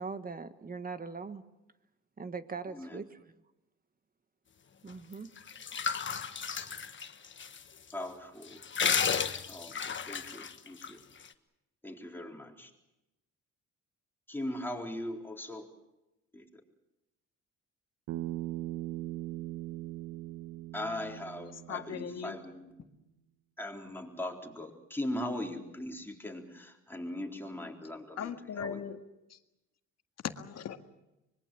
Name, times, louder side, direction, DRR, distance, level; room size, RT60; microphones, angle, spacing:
voice 1, 0.0-1.4 2.2-3.2 4.8-5.3 6.1-6.4, right 4 dB, 30° right, 11 dB, 1.5 m, -41 dB
voice 2, 2.7-3.0 7.9-8.6 9.5-11.0 11.8-12.7 14.3-15.7 16.3-16.5 20.7-22.7 23.6-28.8, left 1 dB, 5° left, 1 dB, 4.0 m, -40 dB
sound 1, 5.1-7.6 7.9-8.0 8.4-10.9, left 6 dB, 40° left, 1.4 m, -32 dB
Bass guitar, 18.1-22.4, right 15 dB, 90° right, 1.2 m, -40 dB
voice 3, 21.7-22.4 28.2-29.0 29.3-29.4 30.2-30.8, left 8 dB, 60° left, 7 dB, 1.8 m, -38 dB
25.0 x 22.0 x 7.5 m, 0.94 s
cardioid pair, 90°, 30 cm